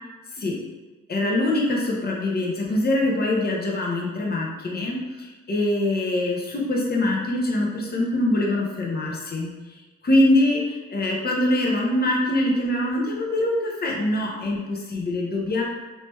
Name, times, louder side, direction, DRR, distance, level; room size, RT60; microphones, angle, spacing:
voice 1, 1.1-9.5 10.0-15.6, left 1 dB, 30° left, -2 dB, 0.9 m, -23 dB
3.3 x 2.9 x 3.0 m, 1.2 s
cardioid pair, 90°, 30 cm